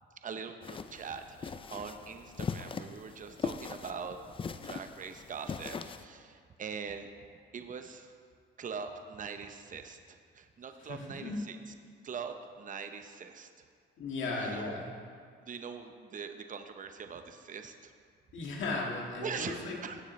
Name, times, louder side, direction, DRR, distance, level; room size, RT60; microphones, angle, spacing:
voice 1, 0.2-4.3 4.6-7.1 7.5-8.1 8.6-11.7 12.0-13.5 14.3-14.8 15.4-17.9 19.2-20.0, right 6 dB, 40° right, 7 dB, 0.7 m, -42 dB
sound 1, 0.6-6.0, left 5 dB, 25° left, 0.4 m, -40 dB
voice 2, 10.8-11.4 14.0-14.9 18.3-19.8, left 3 dB, 75° left, -1 dB, 1.9 m, -36 dB
16.0 x 6.7 x 3.2 m, 2.1 s
cardioid pair, 90°, 20 cm